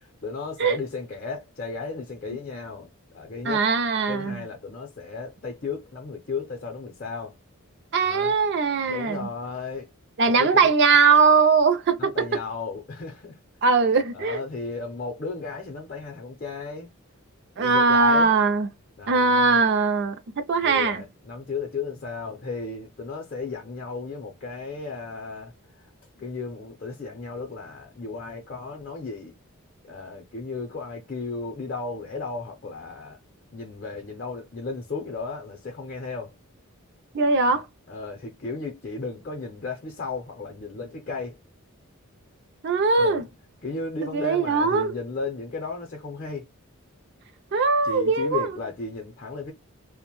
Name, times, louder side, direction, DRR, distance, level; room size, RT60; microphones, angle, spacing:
voice 1, 0.2-2.9 3.1-3.7 4.1-7.3 8.0-8.4 8.9-9.9 10.3-10.7 12.0-13.4 14.1-16.9 17.6-18.3 19.0-19.6 20.6-25.5 25.8-25.9 26.2-29.3 29.8-33.2 33.5-36.4 37.5-37.6 37.9-41.4 43.0-43.2 43.6-46.5 47.8-49.5, left 4 dB, 40° left, 0.6 m, -34 dB
voice 2, 3.4-4.4 7.9-9.3 10.2-12.3 13.6-14.4 17.6-18.7 19.1-21.0 37.1-37.6 42.6-43.3 44.1-44.9 47.5-48.5, right 4 dB, 50° right, 0.4 m, -20 dB
2.5 x 2.1 x 2.9 m
head